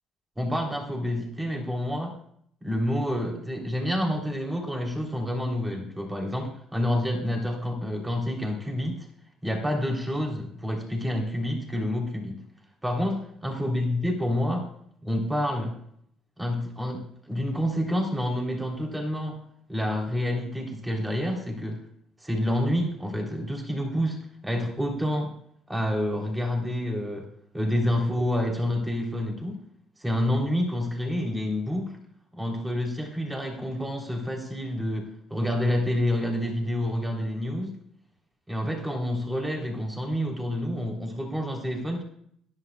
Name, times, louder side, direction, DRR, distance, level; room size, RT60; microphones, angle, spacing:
voice 1, 0.4-2.2 2.6-9.1 9.4-12.4 12.8-14.7 15.0-15.8 16.4-19.4 19.7-21.8 22.2-25.3 25.7-29.6 30.0-32.0 32.3-37.8 38.5-42.0, left 1 dB, 10° right, 1 dB, 3.6 m, -28 dB
21.5 x 12.0 x 2.4 m, 0.67 s
hypercardioid pair, 55°, 0 cm